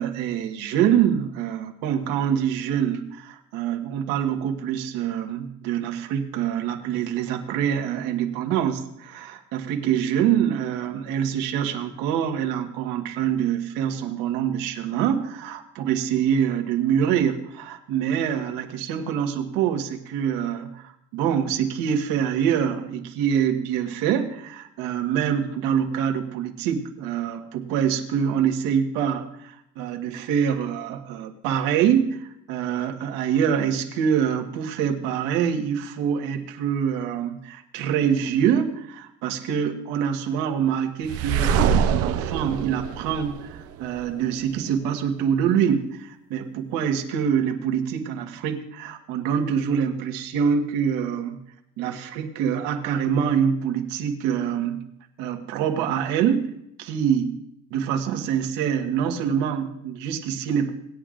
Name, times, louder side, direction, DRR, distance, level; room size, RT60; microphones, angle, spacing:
voice 1, 0.0-51.4 51.8-54.8 55.2-56.5 56.8-57.3 57.7-60.7, right 8 dB, 70° right, 4 dB, 1.5 m, -25 dB
sound 1, 41.1-44.0, right 7 dB, 40° right, 0.6 m, -24 dB
19.0 x 9.9 x 2.5 m, 0.76 s
cardioid pair, 175°, 35 cm